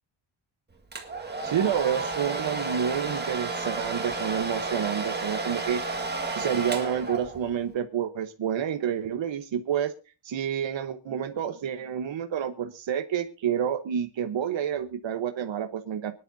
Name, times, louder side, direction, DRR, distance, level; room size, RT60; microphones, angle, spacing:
Domestic sounds home sounds, 0.9-7.6, right 3 dB, 20° right, 1.9 m, -32 dB
voice 1, 1.4-5.8 6.1-9.9 10.2-16.1, right 9 dB, 65° right, 6 dB, 1.2 m, -29 dB
24.5 x 10.0 x 2.7 m, 0.31 s
wide cardioid pair, 170°, 49 cm